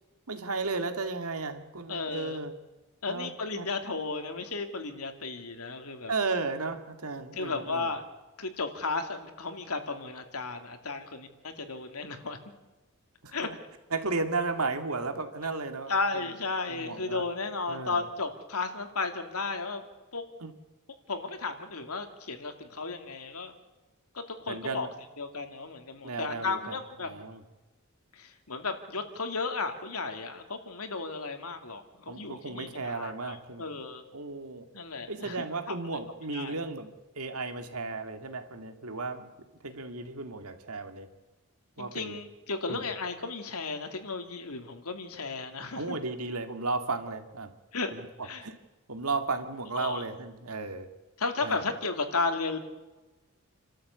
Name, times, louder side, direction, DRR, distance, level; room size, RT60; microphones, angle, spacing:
voice 1, 0.3-2.5 3.1-3.7 6.1-7.9 13.2-13.5 13.9-16.3 16.7-17.2 17.7-18.0 20.4-20.5 24.5-24.9 26.0-26.7 27.0-27.4 32.1-33.7 34.1-34.7 35.1-39.3 39.6-41.1 41.8-42.2 42.7-42.8 45.8-47.5 47.9-48.5 48.9-50.9 51.4-51.6, right 3 dB, 80° right, 7 dB, 2.3 m, -34 dB
voice 2, 1.9-2.4 3.0-6.1 7.3-8.0 8.4-12.4 13.3-13.5 15.9-19.8 20.1-20.2 21.1-23.5 24.1-24.9 25.2-27.1 28.1-34.0 34.7-35.8 36.3-36.6 41.8-46.0 47.7-47.9 48.2-48.4 49.7-50.0 51.2-52.6, left 3 dB, 80° left, 7 dB, 2.6 m, -34 dB
29.0 x 13.0 x 8.3 m, 1.1 s
head